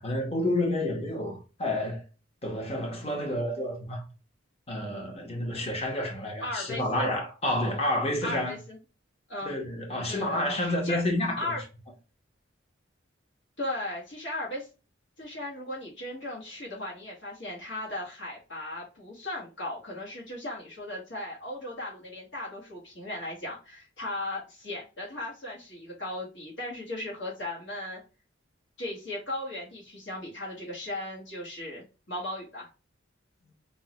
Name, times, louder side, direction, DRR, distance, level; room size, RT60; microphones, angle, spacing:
voice 1, 0.0-2.0 2.4-4.0 4.7-8.5 9.4-11.6, left 1 dB, 30° left, 0.8 m, -29 dB
voice 2, 6.4-7.1 8.2-8.8 9.3-9.6 10.0-11.0 11.4-11.6 13.6-14.7 15.2-28.0 28.8-32.7, left 1 dB, 65° left, 1.1 m, -37 dB
3.5 x 2.0 x 2.7 m
head